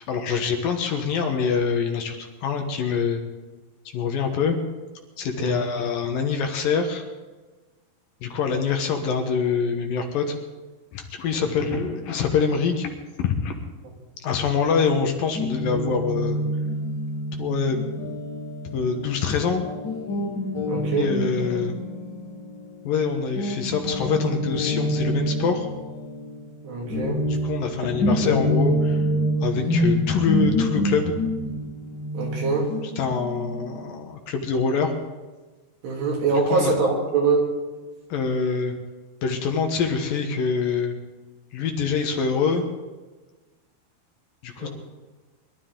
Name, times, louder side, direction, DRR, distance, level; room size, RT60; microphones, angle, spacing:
voice 1, 0.0-3.2 3.9-4.6 5.2-7.0 8.2-10.3 10.9-12.9 13.2-13.6 14.2-16.4 17.4-18.0 18.7-19.6 20.9-21.7 22.8-25.7 27.3-29.0 29.4-31.1 33.0-34.9 36.5-36.7 38.1-38.7 39.2-40.9 41.5-42.6 44.4-44.7, left 5 dB, 65° left, 4 dB, 2.7 m, -25 dB
voice 2, 11.3-11.7 20.6-21.1 26.6-27.2 32.1-32.7 35.8-37.5 44.6-44.7, right 4 dB, 80° right, -2 dB, 5.1 m, -24 dB
Guitar, 15.4-23.0 23.4-33.8, equal, 40° left, 1.7 m, -27 dB
23.0 x 12.5 x 3.8 m, 1.3 s
omnidirectional pair, 4.7 m